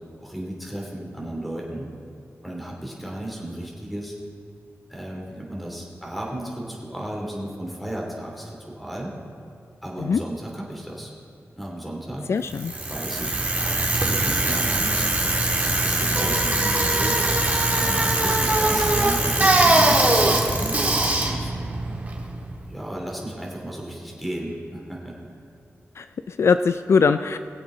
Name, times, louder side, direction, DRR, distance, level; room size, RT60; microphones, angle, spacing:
voice 1, 0.2-1.9 2.4-4.2 4.9-9.1 9.8-11.1 11.6-12.3 12.9-15.1 15.6-17.2 17.7-20.7 21.2-21.5 22.7-25.1, right 1 dB, ahead, -3 dB, 2.7 m, -34 dB
voice 2, 12.3-12.7 26.0-27.4, left 5 dB, 65° left, 10 dB, 0.3 m, -21 dB
Bicycle, 12.5-22.6, right 2 dB, 35° right, 1.8 m, -21 dB
21.0 x 8.0 x 3.8 m, 2.3 s
wide cardioid pair, 105°, 5 cm